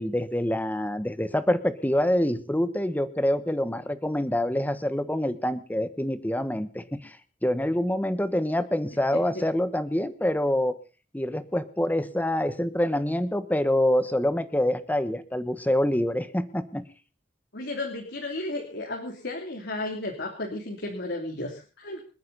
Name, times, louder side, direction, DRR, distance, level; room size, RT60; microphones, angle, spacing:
voice 1, 0.0-7.2 7.4-10.8 11.1-16.8, left 1 dB, 10° left, 13 dB, 1.2 m, -26 dB
voice 2, 17.5-22.0, left 2 dB, 60° left, 1 dB, 3.1 m, -33 dB
28.0 x 9.5 x 4.1 m, 0.36 s
head